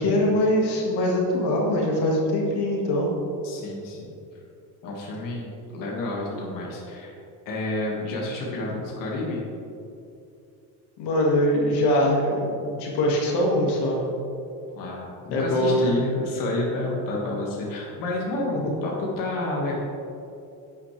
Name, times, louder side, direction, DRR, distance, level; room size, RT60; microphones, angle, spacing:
voice 1, 0.0-3.1 11.0-12.5 12.8-14.0 15.3-15.9 18.5-18.7, left 1 dB, 65° left, -2 dB, 2.1 m, -22 dB
voice 2, 3.4-4.2 4.8-7.2 7.5-9.4 14.7-19.8, left 2 dB, 50° left, -3 dB, 2.0 m, -30 dB
10.5 x 9.0 x 3.4 m, 2.7 s
cardioid pair, 140°, 42 cm